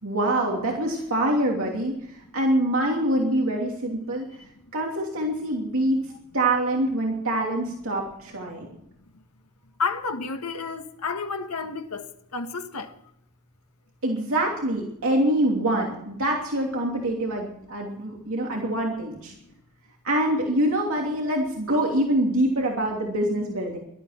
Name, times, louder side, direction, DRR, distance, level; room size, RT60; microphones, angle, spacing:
voice 1, 0.0-4.2 4.7-6.0 6.3-8.7 14.0-19.3 20.0-23.8, right 1 dB, 65° right, 3.0 m, -25 dB
voice 2, 9.8-13.0 18.2-18.3, left 4 dB, 85° left, 1.7 m, -31 dB
17.5 x 12.5 x 5.9 m
head